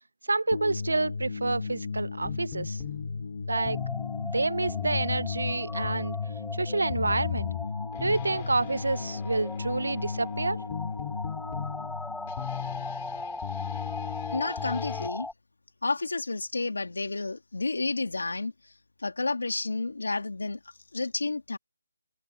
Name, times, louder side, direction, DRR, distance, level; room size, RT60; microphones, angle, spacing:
voice 1, 0.3-2.8 3.5-3.8 4.2-6.2 6.6-7.5 8.0-10.6, right 3 dB, 85° right, 0.5 m, -28 dB
sound 1, 0.5-13.6, left 4 dB, 40° left, 1.2 m, -36 dB
sound 2, 2.2-15.1, left 14 dB, 15° left, 2.2 m, -38 dB
sound 3, 3.5-15.3, left 2 dB, ahead, 0.6 m, -39 dB
voice 2, 14.3-15.3 15.8-18.5 19.0-20.6 20.9-21.6, left 3 dB, 85° left, 3.0 m, -30 dB
figure-of-eight pair, 175°, 0 cm